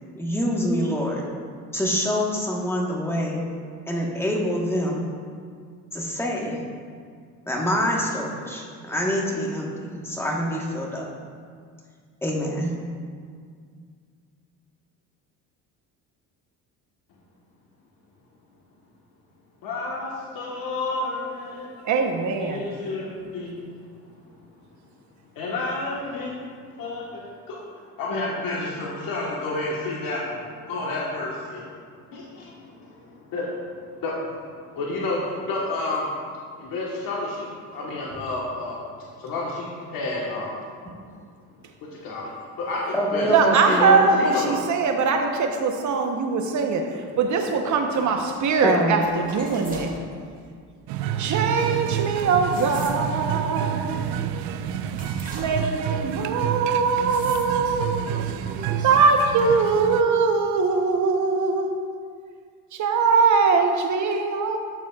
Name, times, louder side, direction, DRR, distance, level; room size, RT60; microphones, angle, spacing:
voice 1, 0.1-1.3 1.7-3.4 3.9-5.1 5.9-6.6 7.5-11.1 12.2-12.7 42.9-44.1 48.6-49.0, equal, 5° left, -2 dB, 1.3 m, -25 dB
voice 2, 19.6-21.8 22.4-24.0 25.3-27.6 28.0-31.7 31.9-36.2 36.6-40.5 41.8-42.3 42.6-44.6 54.5-55.0, left 2 dB, 65° left, -4 dB, 1.3 m, -31 dB
voice 3, 21.8-22.6 43.3-49.9 51.2-54.0 55.3-58.1 58.8-61.7 62.7-64.6, right 4 dB, 50° right, 4 dB, 0.9 m, -22 dB
sound 1, 49.1-50.0 52.2-53.3 54.9-55.9 57.0-57.6 58.0-59.0 59.4-59.5, right 2 dB, 20° right, 1.8 m, -40 dB
sound 2, 50.9-60.0, right 9 dB, 75° right, 0.5 m, -29 dB
12.0 x 6.1 x 2.4 m, 2.1 s
cardioid pair, 105°, 37 cm